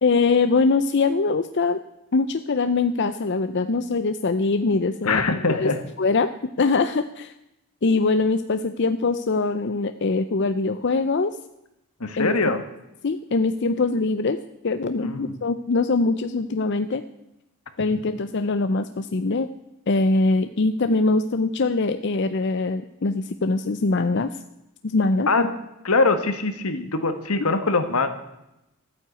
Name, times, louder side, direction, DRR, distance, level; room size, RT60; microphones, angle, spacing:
voice 1, 0.0-1.8 2.1-5.2 5.5-5.7 6.0-6.3 6.6-7.3 7.8-11.4 12.2-12.3 13.0-14.4 14.6-17.0 17.8-19.5 19.9-24.3 24.8-25.3, left 3 dB, 50° left, 10 dB, 0.5 m, -22 dB
voice 2, 5.0-5.8 12.0-12.6 15.0-15.3 25.3-25.5 25.8-28.1, left 3 dB, 80° left, 8 dB, 1.7 m, -22 dB
13.0 x 9.6 x 8.2 m, 0.89 s
head